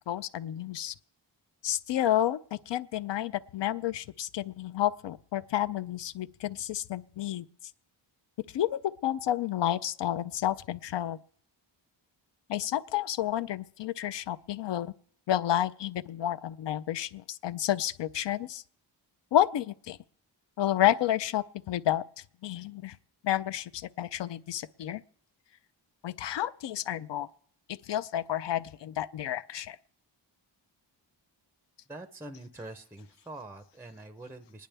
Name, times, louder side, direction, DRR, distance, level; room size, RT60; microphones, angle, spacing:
voice 1, 0.1-0.9 1.6-7.4 8.5-11.2 12.5-14.9 15.3-18.6 19.3-20.0 20.6-22.0 22.4-22.9 23.2-25.0 26.0-27.3 27.9-29.8, left 12 dB, 70° left, 0.5 m, -30 dB
voice 2, 31.9-34.7, right 2 dB, 5° right, 0.5 m, -45 dB
27.0 x 10.5 x 3.3 m
wide cardioid pair, 125°, 45 cm